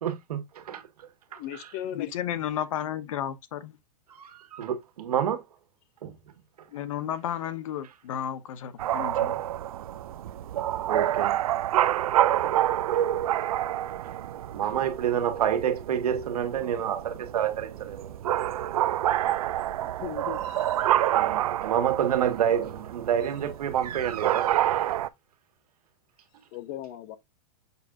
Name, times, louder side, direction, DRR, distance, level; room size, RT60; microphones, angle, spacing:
voice 1, 0.0-1.7 4.1-5.4 6.0-6.2 10.8-11.4 12.9-13.0 14.5-18.2 21.1-25.0, right 9 dB, 85° right, 1.7 m, -28 dB
voice 2, 1.3-2.1 19.8-20.8 26.5-27.2, left 11 dB, 25° left, 0.5 m, -38 dB
voice 3, 1.9-3.8 6.7-9.4, left 10 dB, 60° left, 1.0 m, -33 dB
sound 1, 8.8-25.1, right 12 dB, 70° right, 0.5 m, -28 dB
6.7 x 6.1 x 2.5 m
supercardioid pair, 170°, 19 cm